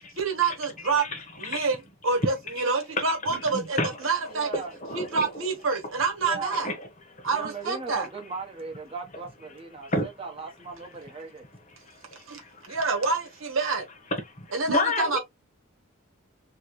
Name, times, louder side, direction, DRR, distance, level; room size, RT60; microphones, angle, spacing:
voice 1, 0.2-1.0 1.4-4.5 4.9-6.7 7.2-8.1 12.3-12.4 12.7-13.8 14.5-15.2, right 4 dB, 75° right, 1.1 m, -27 dB
voice 2, 1.0-1.7 2.6-2.7 3.3-4.3 4.8-5.5 6.5-7.5 9.8-10.1 11.9-12.8 14.2-14.3 14.7-15.2, left 1 dB, 35° left, 1.1 m, -32 dB
voice 3, 4.3-4.7 6.2-6.6 7.2-11.5 15.0-15.2, right 4 dB, 25° right, 0.9 m, -38 dB
3.0 x 2.9 x 3.0 m
head